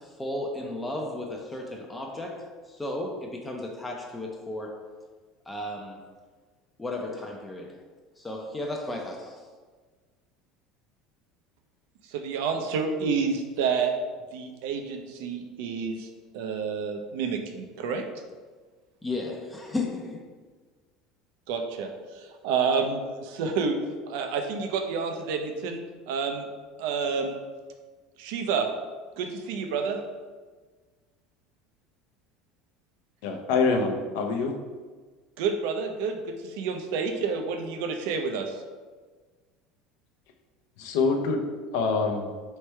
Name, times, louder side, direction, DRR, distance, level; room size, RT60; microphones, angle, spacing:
voice 1, 0.0-4.8 5.5-6.0 6.8-7.8 8.2-9.4 19.0-20.2, left 2 dB, 10° left, 0 dB, 0.5 m, -34 dB
voice 2, 12.1-13.9 14.3-16.1 16.3-18.0 21.5-23.8 24.1-25.8 26.1-26.5 26.8-27.4 28.2-28.7 29.2-30.0 35.4-38.6, right 5 dB, 80° right, 5 dB, 0.5 m, -29 dB
voice 3, 33.2-34.5 40.8-41.4 41.7-42.3, left 4 dB, 75° left, 3 dB, 0.6 m, -25 dB
3.2 x 3.2 x 4.4 m, 1.4 s
cardioid pair, 140°, 0 cm